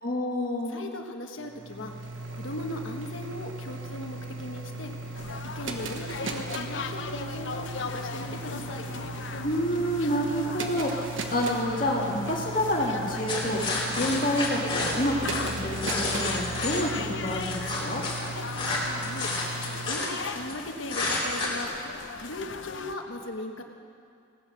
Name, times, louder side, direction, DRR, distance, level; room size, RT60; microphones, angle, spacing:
voice 1, 0.0-0.7 9.4-13.6 13.9-18.0, equal, 45° left, -2 dB, 1.9 m, -28 dB
voice 2, 0.7-1.9 2.3-4.9 5.5-8.9 18.9-21.7 22.1-23.6, left 1 dB, 85° left, 4 dB, 1.3 m, -38 dB
sound 1, 1.4-19.9, right 2 dB, 80° right, 1.2 m, -38 dB
sound 2, 5.1-22.9, left 4 dB, 70° left, 0.7 m, -38 dB
sound 3, 13.3-16.8 17.3-20.5 20.9-21.6, left 3 dB, 25° left, 3.0 m, -30 dB
17.0 x 10.5 x 6.3 m, 2.4 s
head